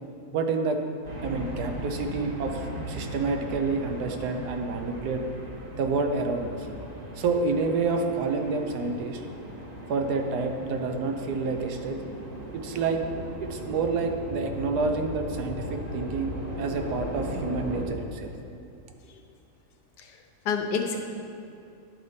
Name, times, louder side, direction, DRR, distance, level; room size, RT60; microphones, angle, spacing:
voice 1, 0.3-0.8 1.2-5.2 5.8-6.7 7.2-9.2 9.9-12.0 12.5-13.0 13.4-18.3, right 4 dB, 80° right, 4 dB, 1.3 m, -28 dB
sound 1, 1.0-17.9, equal, 35° right, 0.8 m, -37 dB
voice 2, 20.0-21.0, left 6 dB, 85° left, 3 dB, 1.4 m, -30 dB
10.5 x 4.1 x 5.0 m, 2.6 s
omnidirectional pair, 1.7 m